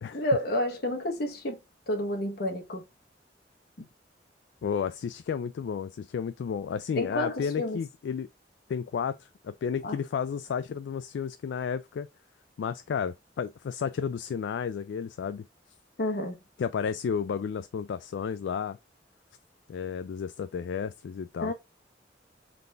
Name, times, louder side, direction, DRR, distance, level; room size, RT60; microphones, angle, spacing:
voice 1, 0.1-1.6 1.9-2.8 6.9-7.8 9.8-10.0 16.0-16.4 21.4-21.5, left 1 dB, 60° left, 1.1 m, -30 dB
voice 2, 4.6-8.3 8.7-12.1 12.6-15.5 16.6-18.8 19.7-21.5, left 7 dB, 75° left, 0.3 m, -32 dB
4.0 x 3.4 x 3.8 m
head